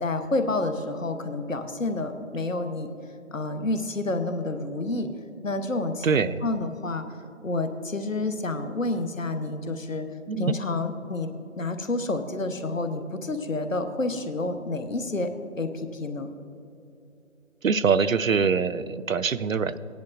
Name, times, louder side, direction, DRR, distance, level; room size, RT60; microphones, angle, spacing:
voice 1, 0.0-2.9 3.3-5.1 5.4-7.0 7.4-10.1 10.4-11.3 11.6-15.3 15.6-16.3, left 2 dB, 70° left, 8 dB, 1.1 m, -29 dB
voice 2, 6.0-6.4 10.3-10.5 17.6-19.8, right 5 dB, 75° right, 14 dB, 0.5 m, -24 dB
17.0 x 10.5 x 2.5 m, 2.7 s
figure-of-eight pair, 165°, 41 cm